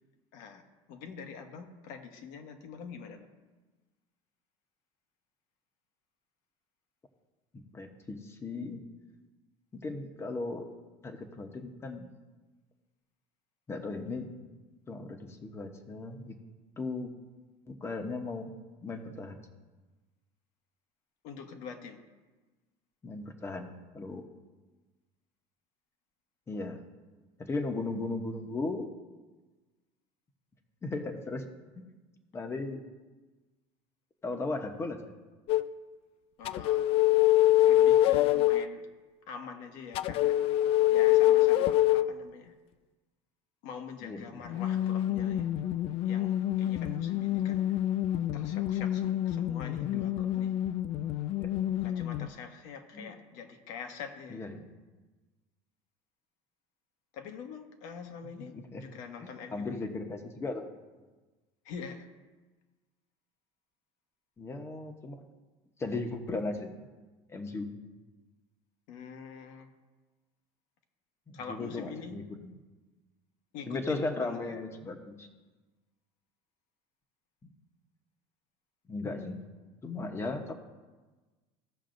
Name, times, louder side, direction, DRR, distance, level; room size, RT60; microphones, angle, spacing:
voice 1, 0.3-0.6 0.9-3.3 21.2-22.0 36.4-36.9 37.6-38.9 39.3-40.4 40.9-42.5 43.6-45.5 46.0-47.7 48.3-50.5 51.7-54.5 57.1-59.7 61.6-62.1 68.9-69.7 71.3-72.2 73.5-74.5, left 6 dB, 70° left, 5 dB, 1.2 m, -45 dB
voice 2, 7.5-8.8 9.7-10.7 11.0-12.1 13.7-14.3 14.9-16.4 16.8-17.1 17.7-18.5 18.8-19.4 23.0-24.2 26.5-26.8 27.4-28.9 30.8-31.4 32.3-32.8 34.2-35.2 44.0-44.4 49.8-50.0 51.4-51.5 52.2-52.3 52.9-53.1 54.3-54.6 58.5-58.9 59.5-60.7 64.4-65.2 65.8-66.7 67.3-67.7 71.3-72.5 73.7-75.3 78.9-79.5 79.8-80.5, left 3 dB, 20° left, 5 dB, 0.9 m, -36 dB
sound 1, 35.5-35.7 36.4-38.7 39.9-42.1 44.4-52.3, left 13 dB, 45° left, 0.4 m, -26 dB
16.0 x 6.5 x 2.6 m, 1.3 s
cardioid pair, 145°, 14 cm